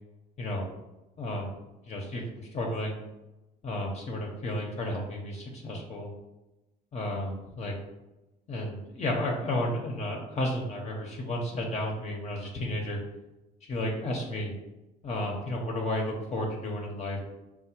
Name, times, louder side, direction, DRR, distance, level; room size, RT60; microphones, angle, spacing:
voice 1, 1.2-1.5 1.9-3.0 3.6-6.1 6.9-7.8 8.5-13.0 13.7-14.5 15.0-17.2, left 1 dB, 40° left, 0 dB, 0.7 m, -32 dB
4.4 x 2.1 x 4.3 m, 1.0 s
cardioid pair, 110°, 17 cm